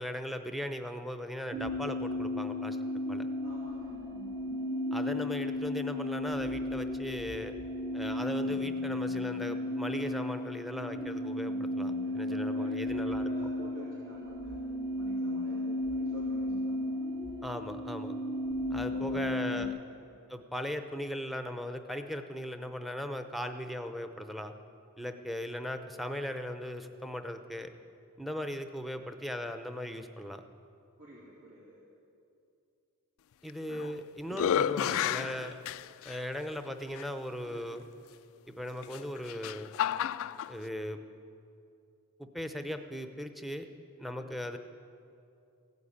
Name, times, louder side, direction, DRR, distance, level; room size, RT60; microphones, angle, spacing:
voice 1, 0.0-2.8 3.1-3.3 4.9-7.5 7.9-13.3 17.4-18.1 18.7-19.7 20.3-24.5 25.0-27.7 28.2-30.4 33.4-35.5 36.0-37.8 38.5-39.7 40.5-41.0 42.2-43.7 44.0-44.6, equal, ahead, 7 dB, 0.7 m, -38 dB
sound 1, 1.5-19.7, left 1 dB, 45° right, 1.1 m, -34 dB
voice 2, 3.4-3.9 12.0-14.7 15.0-16.7 18.9-20.0 31.0-31.8 37.4-37.8 44.1-44.4, right 1 dB, 80° right, -8 dB, 3.3 m, -50 dB
sound 2, 33.5-34.0 34.3-36.2 37.0-37.1 38.8-40.5, left 9 dB, 65° left, 0.3 m, -31 dB
16.0 x 9.3 x 8.6 m, 2.5 s
head